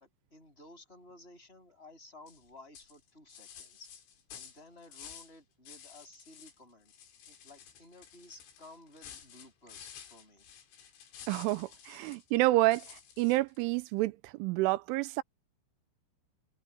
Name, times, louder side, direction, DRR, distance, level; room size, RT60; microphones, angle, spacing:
voice 1, 0.0-3.9 4.3-6.9 7.2-10.4, left 2 dB, 10° left, 7.5 m, -55 dB
sound 1, 2.3-2.5 2.8-5.4 5.7-6.6 6.9-12.3 12.7-13.6, left 8 dB, 80° left, 5.9 m, -52 dB
voice 2, 11.3-15.2, right 19 dB, 85° right, 3.2 m, -29 dB
omnidirectional pair, 5.6 m